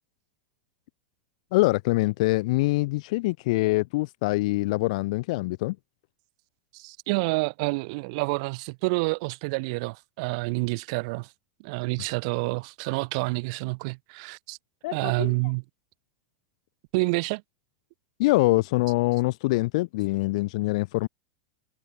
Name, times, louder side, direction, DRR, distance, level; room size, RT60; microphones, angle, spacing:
voice 1, 1.5-5.8 14.8-15.3 18.2-21.1, left 21 dB, 60° left, 5.3 m, -24 dB
voice 2, 6.7-11.3 11.6-14.6 14.9-15.6 16.9-17.4, right 29 dB, 55° right, 4.8 m, -28 dB
hypercardioid pair, 90°, 4 cm